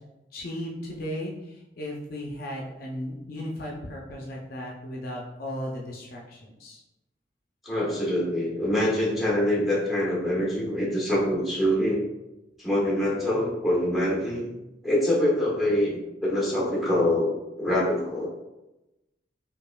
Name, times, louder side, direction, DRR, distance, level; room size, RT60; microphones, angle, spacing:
voice 1, 0.3-6.8, left 1 dB, 55° left, -2 dB, 0.5 m, -36 dB
voice 2, 7.6-12.0 12.6-14.4 14.8-18.4, left 1 dB, ahead, -5 dB, 1.1 m, -25 dB
5.0 x 2.4 x 2.2 m, 0.97 s
head